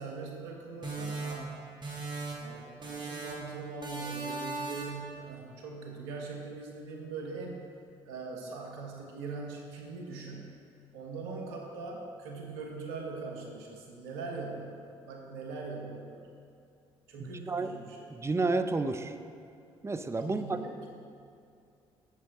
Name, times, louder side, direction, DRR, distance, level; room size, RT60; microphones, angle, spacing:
voice 1, 0.0-1.5 2.4-7.6 8.0-10.6 10.9-16.2 17.1-18.1 20.2-20.9, right 4 dB, 85° right, 1 dB, 1.2 m, -41 dB
sound 1, 0.8-2.5 2.8-3.5 3.8-5.1, right 3 dB, 35° right, 2.4 m, -38 dB
voice 2, 17.2-17.7 18.1-19.1 19.8-20.6, right 3 dB, 20° right, 8 dB, 0.7 m, -31 dB
10.5 x 7.5 x 3.6 m, 2.5 s
hypercardioid pair, 55°, 13 cm